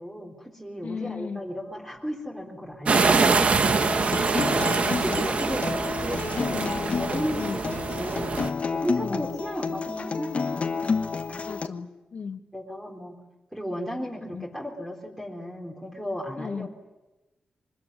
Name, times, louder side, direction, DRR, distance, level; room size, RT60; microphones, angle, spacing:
voice 1, 0.0-4.2 4.9-6.6 7.0-8.5 8.7-10.7 11.3-11.5 12.5-13.2 13.5-16.7, equal, 5° right, -1 dB, 3.9 m, -34 dB
voice 2, 0.8-1.5 3.3-4.2 4.8-5.3 6.5-7.0 7.4-7.6 9.0-9.3 11.4-12.4 14.3-14.5 16.4-16.7, left 5 dB, 70° left, 6 dB, 2.0 m, -36 dB
sound 1, 2.7-2.8 3.2-5.9 6.2-6.4 6.7-6.8 7.1-7.2 7.5-7.6, right 5 dB, 75° right, 1.2 m, -39 dB
sound 2, 2.9-8.5, right 4 dB, 50° right, 1.4 m, -25 dB
Acoustic guitar, 3.7-11.7, left 5 dB, 50° left, 1.3 m, -30 dB
24.0 x 21.0 x 10.0 m, 1.1 s
wide cardioid pair, 130°, 3 cm